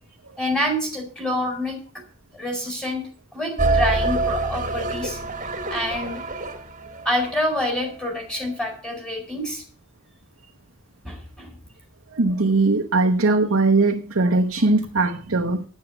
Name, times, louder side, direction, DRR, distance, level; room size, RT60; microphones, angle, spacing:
voice 1, 0.4-1.8 2.3-3.0 3.3-5.2 5.7-6.2 7.0-9.6 11.0-11.5, left 1 dB, 5° left, 4.4 m, -27 dB
sound 1, 3.6-7.9, right 2 dB, 35° right, 1.8 m, -25 dB
voice 2, 12.1-15.6, right 3 dB, 65° right, 1.1 m, -20 dB
9.5 x 9.1 x 7.8 m
head